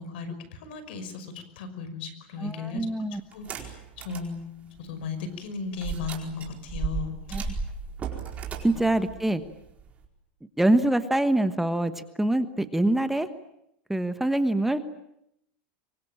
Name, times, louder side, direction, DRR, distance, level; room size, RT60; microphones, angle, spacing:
voice 1, 0.0-2.9 3.3-7.6 8.6-8.8, left 5 dB, 75° left, 11 dB, 5.7 m, -36 dB
voice 2, 2.4-3.2 7.3-7.4 8.6-9.4 10.6-13.3 13.9-14.8, right 1 dB, 5° right, 10 dB, 1.3 m, -24 dB
sound 1, 3.3-4.3 4.8-4.9 5.8-10.1, right 5 dB, 25° right, 4.6 m, -35 dB
25.0 x 24.0 x 8.9 m, 0.80 s
supercardioid pair, 135°, 6 cm